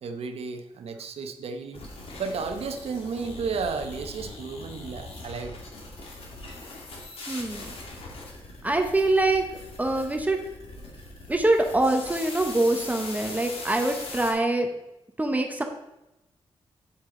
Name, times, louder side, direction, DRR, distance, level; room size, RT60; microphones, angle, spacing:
voice 1, 0.0-1.8 2.2-5.6, right 5 dB, 75° right, 6 dB, 0.9 m, -33 dB
sound 1, 1.7-14.3, left 2 dB, 70° left, 2.2 m, -41 dB
voice 2, 7.3-7.7 8.6-9.4 9.8-10.4 11.3-14.7 15.2-15.6, right 2 dB, 15° right, 4 dB, 0.9 m, -24 dB
8.9 x 7.8 x 3.8 m, 0.91 s
wide cardioid pair, 115°, 10 cm